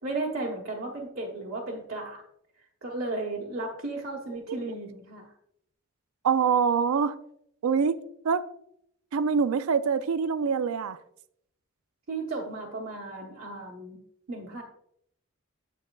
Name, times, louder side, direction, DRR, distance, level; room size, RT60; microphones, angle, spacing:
voice 1, 0.0-2.2 2.8-5.3 12.1-14.0 14.3-14.6, right 2 dB, 65° right, -2 dB, 1.1 m, -34 dB
voice 2, 6.2-7.2 7.6-8.4 9.1-11.0, right 6 dB, 80° right, 14 dB, 0.4 m, -25 dB
7.5 x 7.2 x 2.3 m, 0.73 s
head